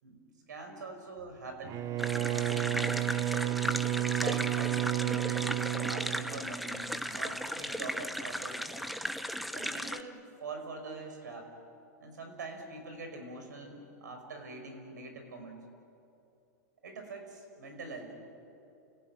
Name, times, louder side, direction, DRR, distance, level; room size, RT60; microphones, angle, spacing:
voice 1, 0.5-1.9 2.3-2.9 4.1-8.7 9.5-11.5 12.0-15.6 16.8-18.1, right 3 dB, 85° right, 5 dB, 5.6 m, -44 dB
Bowed string instrument, 1.6-7.0, right 14 dB, 35° right, 0.7 m, -32 dB
sound 1, 2.0-10.0, equal, ahead, 0.9 m, -36 dB
29.5 x 17.0 x 8.9 m, 2.7 s
hypercardioid pair, 110°, 9 cm